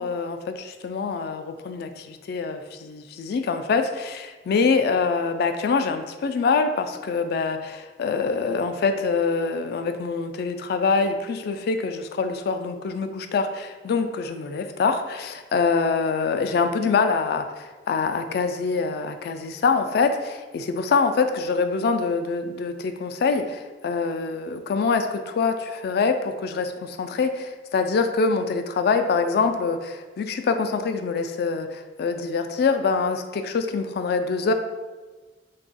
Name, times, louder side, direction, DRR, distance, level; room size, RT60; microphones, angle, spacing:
voice 1, 0.0-34.5, left 4 dB, 60° left, 7 dB, 0.3 m, -25 dB
3.4 x 2.3 x 3.8 m, 1.3 s
head